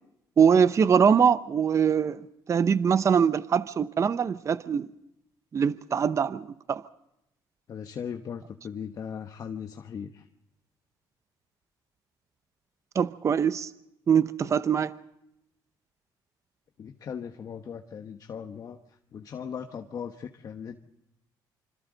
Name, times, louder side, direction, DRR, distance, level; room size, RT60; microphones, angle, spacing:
voice 1, 0.4-2.2 2.5-4.9 5.5-6.8 12.9-13.7 14.1-14.9, right 7 dB, 40° right, 0.8 m, -23 dB
voice 2, 7.7-10.3 16.8-20.8, left 7 dB, 50° left, 1.2 m, -38 dB
26.5 x 26.0 x 4.0 m
cardioid pair, 95°, 8 cm